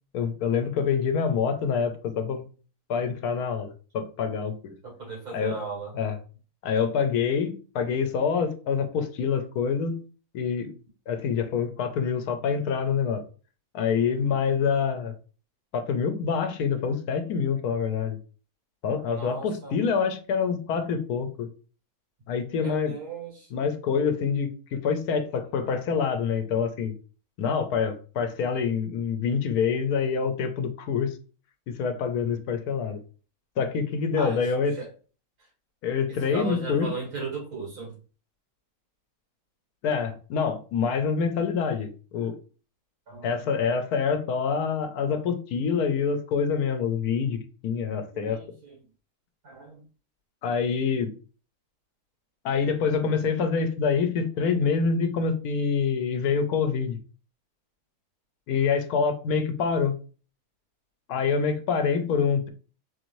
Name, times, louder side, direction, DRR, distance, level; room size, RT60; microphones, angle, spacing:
voice 1, 0.1-2.4 2.9-4.7 5.3-5.6 5.9-6.2 6.6-10.0 10.3-10.7 11.1-13.2 13.7-15.1 15.7-18.2 18.8-21.5 22.3-22.9 23.5-26.9 27.4-31.2 31.7-33.0 33.6-34.7 35.8-36.9 39.8-42.4 43.2-48.4 50.4-51.1 52.4-57.0 58.5-59.9 61.1-62.5, left 6 dB, 85° left, 8 dB, 1.1 m, -26 dB
voice 2, 4.8-5.9 19.1-19.8 22.6-23.5 34.2-34.4 34.7-34.9 36.1-38.0 43.1-43.5 48.1-48.8 49.4-49.8, right 3 dB, 80° right, -1 dB, 2.4 m, -36 dB
4.2 x 2.6 x 3.0 m, 0.37 s
omnidirectional pair, 1.6 m